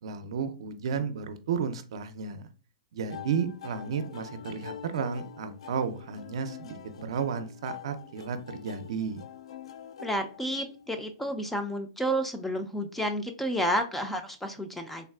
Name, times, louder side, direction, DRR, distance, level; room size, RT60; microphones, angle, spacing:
voice 1, 0.0-2.5 2.9-9.2, right 6 dB, 70° right, 10 dB, 0.5 m, -33 dB
sound 1, 3.1-11.0, left 8 dB, 80° left, 0.4 m, -45 dB
voice 2, 10.0-15.1, equal, 5° left, 6 dB, 0.3 m, -31 dB
3.4 x 2.3 x 2.3 m, 0.37 s
hypercardioid pair, 145°, 3 cm